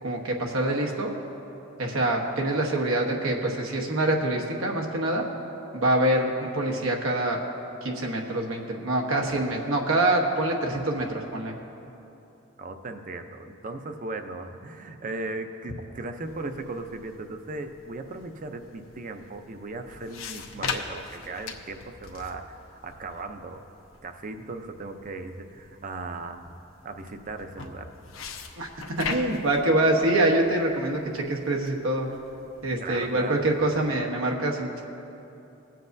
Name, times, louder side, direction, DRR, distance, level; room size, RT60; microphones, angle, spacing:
voice 1, 0.0-1.1 1.8-5.2 5.7-7.4 7.8-11.6 28.6-28.7 29.0-32.1 32.6-34.8, right 1 dB, 90° right, 1 dB, 1.1 m, -25 dB
voice 2, 12.6-23.6 24.0-26.5 26.8-27.9 32.8-33.4, right 2 dB, 40° right, 6 dB, 0.6 m, -37 dB
sound 1, 16.2-34.0, left 5 dB, 80° left, 0.8 m, -42 dB
21.0 x 7.7 x 2.6 m, 2.9 s
head